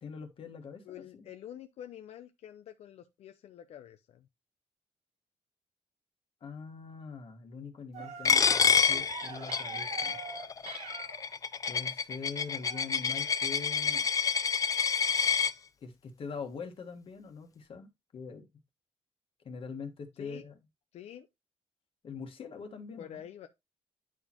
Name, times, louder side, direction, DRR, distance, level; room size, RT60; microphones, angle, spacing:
voice 1, 0.0-1.3 6.4-10.2 11.7-14.1 15.8-18.5 19.4-20.5 22.0-23.2, left 5 dB, 55° left, 1.5 m, -43 dB
voice 2, 0.8-4.3 20.2-20.4 20.9-21.3 23.0-23.5, left 10 dB, 85° left, 0.6 m, -47 dB
sound 1, 7.9-11.3 12.6-12.9 13.2-13.3, right 7 dB, 80° right, 1.3 m, -44 dB
Coin (dropping), 8.3-15.5, left 6 dB, 35° left, 0.4 m, -28 dB
9.8 x 4.3 x 2.9 m
cardioid pair, 125°, 11 cm